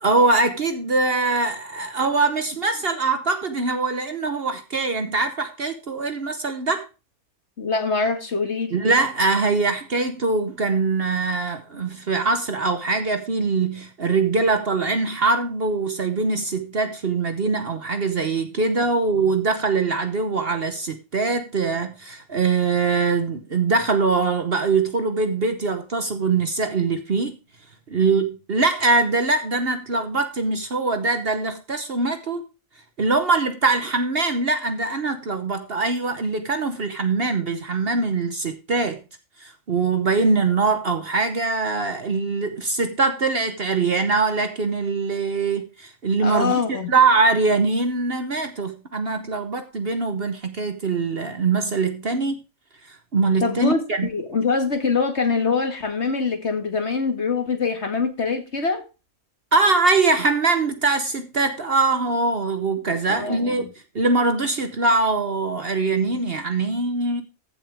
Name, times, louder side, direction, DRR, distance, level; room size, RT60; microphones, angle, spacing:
voice 1, 0.0-6.9 8.7-27.4 27.9-32.4 33.0-39.0 39.4-52.4 52.9-54.1 59.5-63.7 63.9-67.2, right 3 dB, 45° right, 1.1 m, -22 dB
voice 2, 7.6-8.7 46.2-46.9 53.4-58.8 63.1-63.7, left 4 dB, 50° left, 2.1 m, -24 dB
15.0 x 7.0 x 3.5 m
omnidirectional pair, 1.5 m